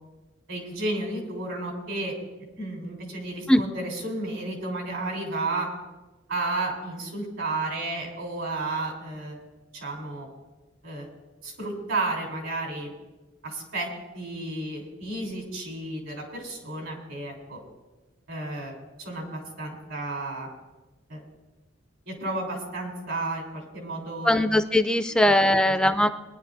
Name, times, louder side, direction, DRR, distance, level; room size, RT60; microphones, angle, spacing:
voice 1, 0.5-2.1 2.6-5.7 6.3-9.4 9.7-10.3 10.8-11.1 11.4-12.9 13.4-13.9 14.1-17.6 18.3-20.5 21.1-21.2 22.1-24.4 25.1-25.2 25.6-25.9, right 2 dB, 80° right, 0 dB, 3.5 m, -32 dB
voice 2, 24.2-26.1, left 1 dB, 5° left, 9 dB, 0.3 m, -20 dB
22.0 x 10.5 x 2.6 m, 1.1 s
head